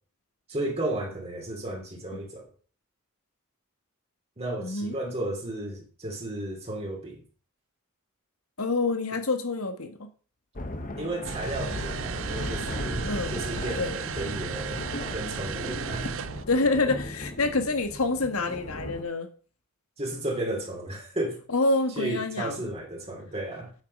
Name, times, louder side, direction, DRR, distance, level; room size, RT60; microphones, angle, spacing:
voice 1, 0.5-2.5 4.4-7.2 11.0-14.9 15.1-16.1 20.0-21.4 22.0-23.7, right 1 dB, 30° right, 2.8 m, -33 dB
voice 2, 4.6-5.0 8.6-10.1 13.0-13.4 13.8-14.0 16.5-19.3 21.5-22.6, left 3 dB, 80° left, 1.6 m, -27 dB
sound 1, 10.6-19.0, left 1 dB, 40° left, 1.3 m, -36 dB
sound 2, 11.2-16.5, right 7 dB, 65° right, 0.5 m, -35 dB
9.1 x 8.1 x 5.5 m
head